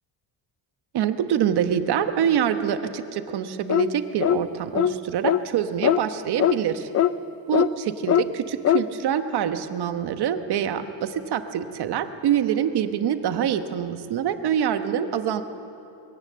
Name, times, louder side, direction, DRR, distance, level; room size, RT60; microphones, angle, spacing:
voice 1, 0.9-6.9 7.5-15.4, right 9 dB, 65° right, 9 dB, 1.2 m, -25 dB
sound 1, 3.7-3.9 4.2-4.4 4.7-4.9 5.2-5.4 5.8-6.0 6.4-6.6 6.9-7.1 7.5-7.7 8.1-8.3 8.6-8.8, left 11 dB, 40° left, 0.4 m, -20 dB
22.0 x 17.0 x 7.5 m, 2.8 s
cardioid pair, 155°, 42 cm